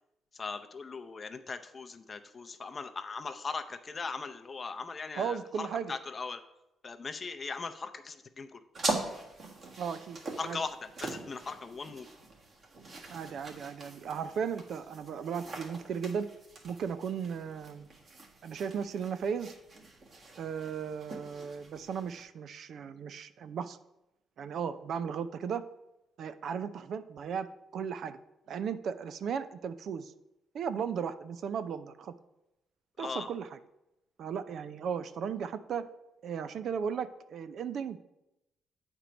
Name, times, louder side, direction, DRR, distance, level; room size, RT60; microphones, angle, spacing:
voice 1, 0.4-6.4 6.8-8.6 10.4-10.8 11.0-12.1 33.0-33.3, left 4 dB, 35° left, 9 dB, 0.6 m, -39 dB
voice 2, 5.2-5.9 9.8-10.6 13.1-16.3 16.6-17.9 18.4-19.6 20.4-23.8 24.4-25.7 26.2-27.5 27.7-28.2 28.5-30.1 30.5-32.1 33.0-33.6 34.2-35.9 36.2-38.0, right 7 dB, 65° right, 12 dB, 0.4 m, -36 dB
sound 1, 8.7-22.2, right 2 dB, 50° right, 1.5 m, -42 dB
8.1 x 4.5 x 5.1 m, 0.90 s
cardioid pair, 90°, 0 cm